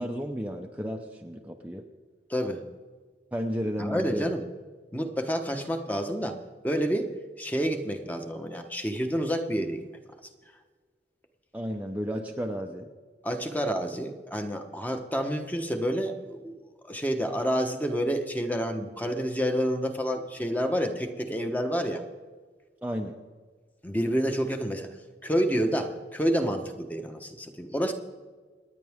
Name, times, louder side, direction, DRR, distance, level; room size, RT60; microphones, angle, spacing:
voice 1, 0.0-1.9 3.3-4.3 11.5-12.9 22.8-23.1, equal, 10° right, 1 dB, 0.7 m, -33 dB
voice 2, 2.3-2.6 3.8-4.4 4.9-6.4 6.6-7.1 7.4-9.8 13.2-16.5 16.8-22.0 23.8-24.9 25.2-27.9, equal, 10° left, 5 dB, 1.1 m, -29 dB
28.0 x 10.0 x 3.6 m, 1.5 s
head